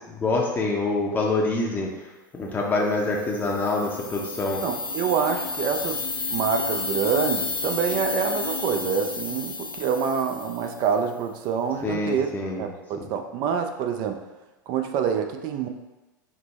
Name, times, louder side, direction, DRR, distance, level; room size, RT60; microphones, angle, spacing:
voice 1, 0.2-1.9 2.3-4.6 11.8-12.7 13.0-13.1, left 2 dB, 15° left, -2 dB, 0.6 m, -25 dB
sound 1, 3.1-11.0, left 3 dB, 80° left, 0.8 m, -31 dB
voice 2, 4.6-6.0 6.3-12.3 12.6-14.2 14.7-15.7, right 7 dB, 45° right, 6 dB, 0.4 m, -26 dB
5.2 x 2.0 x 3.0 m, 1.1 s
hypercardioid pair, 95°, 11 cm